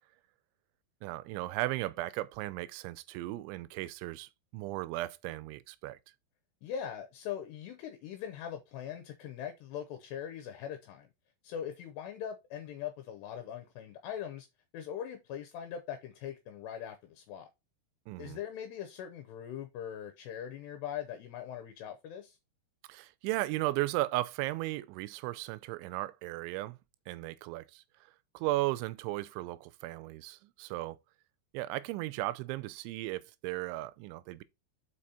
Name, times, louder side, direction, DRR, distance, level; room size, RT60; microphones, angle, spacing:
voice 1, 1.0-6.0 18.1-18.4 22.9-26.8 27.1-27.8 28.3-31.0 31.5-34.4, right 17 dB, 85° right, 3.0 m, -36 dB
voice 2, 6.6-11.1 11.4-14.5 14.7-17.5 18.2-22.4, left 9 dB, 80° left, 2.8 m, -41 dB
6.1 x 5.1 x 4.2 m
omnidirectional pair, 5.3 m